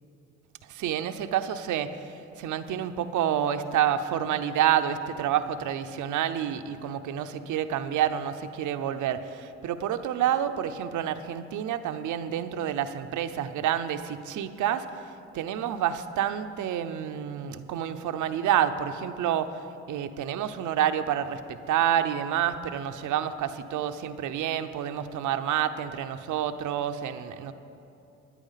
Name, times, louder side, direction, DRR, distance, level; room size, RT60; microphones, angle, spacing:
voice 1, 0.7-15.1 15.3-27.5, right 10 dB, 75° right, 10 dB, 0.7 m, -28 dB
12.5 x 9.9 x 5.7 m, 2.8 s
cardioid pair, 90°, 30 cm